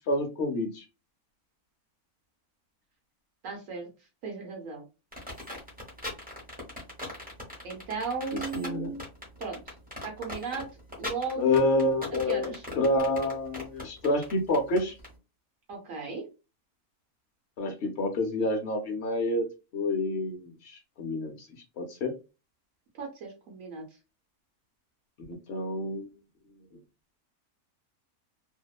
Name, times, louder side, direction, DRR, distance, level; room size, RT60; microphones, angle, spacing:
voice 1, 0.1-0.8 8.5-8.9 11.4-14.9 17.6-19.4 19.7-21.5 21.8-22.1 25.3-26.1, left 2 dB, 65° left, 3 dB, 0.7 m, -28 dB
voice 2, 3.4-3.9 4.2-4.8 7.6-9.0 9.4-9.7 10.0-10.7 11.0-11.7 12.3-12.6 15.7-16.2 23.0-23.8, right 4 dB, 65° right, 1 dB, 1.1 m, -36 dB
sound 1, 5.1-15.1, left 1 dB, 10° right, 0.7 m, -39 dB
2.8 x 2.0 x 2.3 m, 0.30 s
omnidirectional pair, 1.6 m